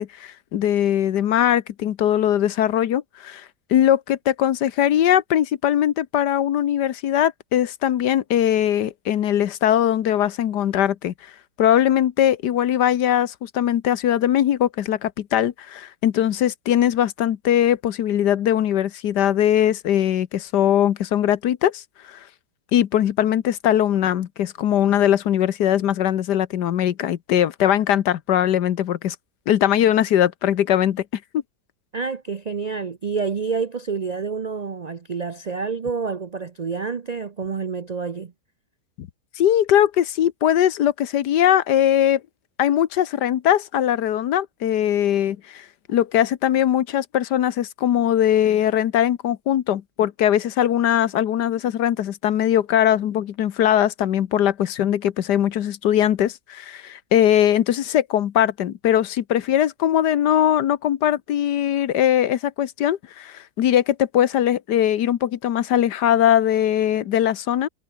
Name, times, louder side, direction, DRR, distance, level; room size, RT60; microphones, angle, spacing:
voice 1, 0.0-3.4 3.7-11.1 11.6-21.8 22.1-22.2 22.7-29.1 29.5-31.0 39.0-39.1 39.4-42.2 42.6-67.7, left 11 dB, 80° left, 1.6 m, -20 dB
voice 2, 31.9-38.3, right 5 dB, 75° right, 0.3 m, -28 dB
omnidirectional pair, 1.8 m